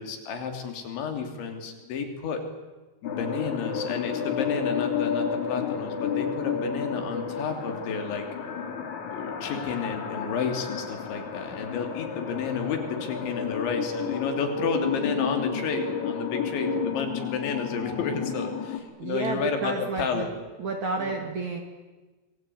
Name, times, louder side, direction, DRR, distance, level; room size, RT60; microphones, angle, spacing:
voice 1, 0.0-2.4 3.0-8.2 9.1-20.3 21.0-21.2, left 5 dB, 65° left, 5 dB, 5.1 m, -31 dB
sound 1, 3.0-18.8, left 6 dB, 40° left, 3.4 m, -31 dB
voice 2, 19.0-20.3 20.6-21.6, right 3 dB, 45° right, 4 dB, 2.9 m, -30 dB
26.5 x 21.5 x 9.3 m, 1.2 s
omnidirectional pair, 5.8 m